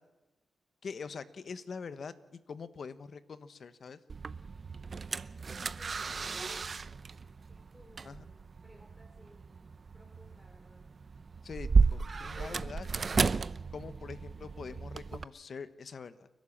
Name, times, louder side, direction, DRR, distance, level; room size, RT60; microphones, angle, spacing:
voice 1, 0.8-2.1 2.5-4.0 8.0-8.2 11.4-13.3 13.7-16.3, left 5 dB, 60° left, 13 dB, 1.2 m, -44 dB
sound 1, 4.1-15.2, right 4 dB, 50° right, 0.6 m, -33 dB
voice 2, 5.7-6.6 7.5-10.9, equal, 10° left, -1 dB, 5.2 m, -61 dB
30.0 x 12.0 x 7.4 m, 1.1 s
cardioid pair, 70°, 0 cm